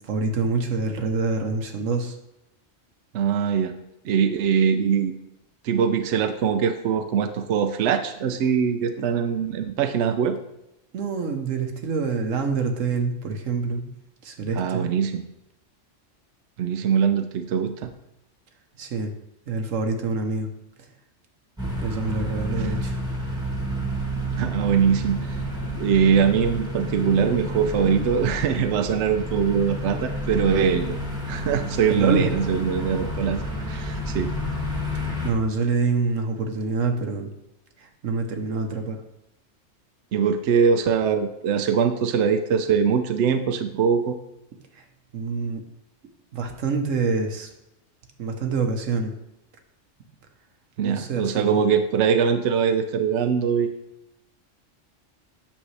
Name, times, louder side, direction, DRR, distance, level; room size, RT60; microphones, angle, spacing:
voice 1, 0.0-2.2 9.0-9.1 10.9-13.8 14.2-14.8 18.8-19.1 19.5-20.5 21.8-23.0 31.9-32.3 35.0-37.3 37.8-39.0 45.1-45.6 46.3-47.5 48.2-49.1 50.8-51.8, right 4 dB, 85° right, 5 dB, 1.3 m, -26 dB
voice 2, 3.1-3.7 4.0-5.2 5.6-10.4 14.6-15.2 16.6-17.9 22.6-22.8 24.3-25.3 25.7-31.0 31.3-33.4 33.7-34.3 40.1-44.2 50.8-53.7, right 7 dB, 70° right, 7 dB, 0.8 m, -22 dB
sound 1, 21.6-35.3, equal, 5° right, 1.7 m, -30 dB
8.7 x 6.5 x 3.3 m, 0.88 s
omnidirectional pair, 1.3 m